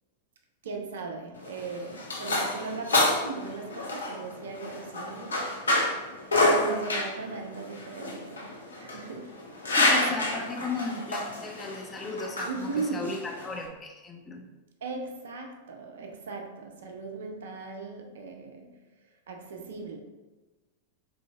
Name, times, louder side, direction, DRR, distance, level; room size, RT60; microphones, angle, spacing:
voice 1, 0.6-9.4 12.4-13.3 14.8-20.0, right 4 dB, 60° right, 0.4 m, -38 dB
sound 1, 1.3-13.7, left 1 dB, 70° left, 0.5 m, -28 dB
voice 2, 9.8-14.5, left 3 dB, 20° left, 0.5 m, -35 dB
3.8 x 2.8 x 2.3 m
figure-of-eight pair, 90°, 0 cm